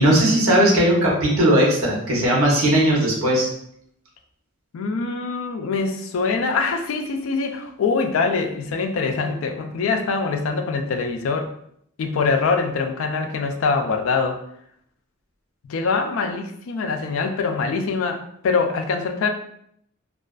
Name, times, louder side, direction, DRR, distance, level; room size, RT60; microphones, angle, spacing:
voice 1, 0.0-3.5, right 1 dB, 85° right, -3 dB, 0.9 m, -18 dB
voice 2, 4.7-11.5 12.0-14.4 15.7-19.3, left 4 dB, 70° left, 5 dB, 0.3 m, -24 dB
2.4 x 2.3 x 2.3 m, 0.70 s
head